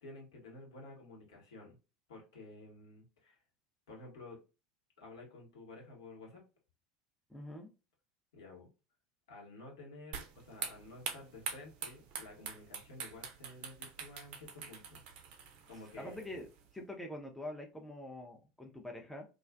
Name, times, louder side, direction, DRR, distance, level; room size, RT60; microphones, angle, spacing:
voice 1, 0.0-1.8 2.1-3.4 3.9-4.4 5.0-6.4 8.3-8.7 9.3-15.0 15.7-16.3, left 2 dB, 70° left, -1 dB, 1.0 m, -52 dB
voice 2, 7.3-7.7 16.0-16.5 16.7-19.3, left 1 dB, 5° left, 2 dB, 0.5 m, -45 dB
sound 1, 10.1-16.7, right 6 dB, 50° right, 0.5 m, -45 dB
2.4 x 2.3 x 2.2 m, 0.30 s
figure-of-eight pair, 75°, 3 cm